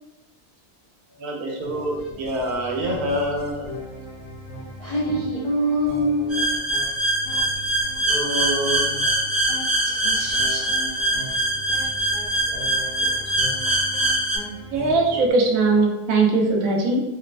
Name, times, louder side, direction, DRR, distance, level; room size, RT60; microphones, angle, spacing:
voice 1, 1.2-3.7 8.1-8.9 12.5-12.7 13.0-13.1 13.6-13.8, right 1 dB, 85° right, -1 dB, 1.2 m, -27 dB
sound 1, 1.6-15.3, equal, 55° left, 0.8 m, -38 dB
voice 2, 4.8-6.5 9.8-10.8, equal, 75° left, -6 dB, 0.4 m, -25 dB
sound 2, 6.3-14.4, right 1 dB, 20° right, 0.3 m, -23 dB
voice 3, 14.7-17.0, right 3 dB, 70° right, 1 dB, 1.0 m, -19 dB
3.8 x 2.2 x 2.4 m, 0.96 s
omnidirectional pair, 1.6 m